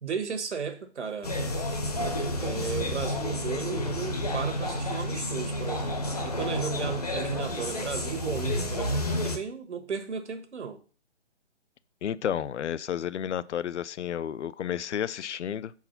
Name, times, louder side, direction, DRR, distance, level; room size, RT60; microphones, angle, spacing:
voice 1, 0.0-1.4 2.3-10.8, right 6 dB, 75° right, 1.3 m, -35 dB
sound 1, 1.2-9.4, left 1 dB, 35° left, 0.7 m, -30 dB
voice 2, 12.0-15.7, left 9 dB, 80° left, 0.5 m, -31 dB
4.7 x 4.4 x 5.6 m
hypercardioid pair, 180°, 35 cm